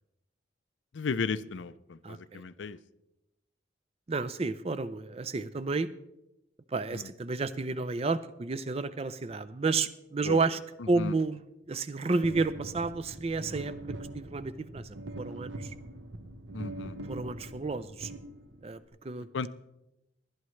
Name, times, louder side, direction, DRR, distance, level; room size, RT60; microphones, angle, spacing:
voice 1, 0.9-2.8 6.9-7.1 10.2-10.4 10.8-11.1 16.5-17.0 19.3-19.5, left 4 dB, 90° left, 15 dB, 0.5 m, -35 dB
voice 2, 2.0-2.4 4.1-5.9 6.7-10.6 10.9-13.7 14.1-15.7 17.1-18.1 18.6-19.3, right 3 dB, 35° right, 14 dB, 0.4 m, -31 dB
sound 1, 12.2-18.8, right 1 dB, 80° right, 1.2 m, -42 dB
19.5 x 11.5 x 3.2 m, 0.91 s
head